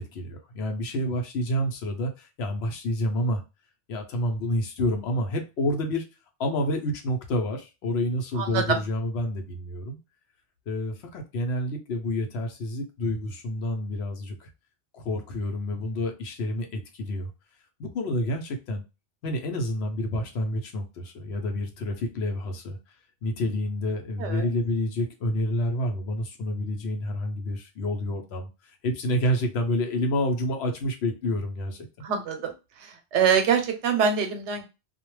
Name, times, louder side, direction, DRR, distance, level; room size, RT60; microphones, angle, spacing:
voice 1, 0.0-3.4 3.9-6.1 6.4-10.0 10.7-14.5 14.9-17.3 17.8-18.8 19.2-22.8 23.2-28.5 28.8-31.9, left 1 dB, 75° left, 3 dB, 0.9 m, -28 dB
voice 2, 8.3-8.8 24.2-24.4 32.0-32.5 32.8-34.6, right 6 dB, 90° right, 6 dB, 0.9 m, -24 dB
2.3 x 2.1 x 3.1 m, 0.27 s
omnidirectional pair, 1.1 m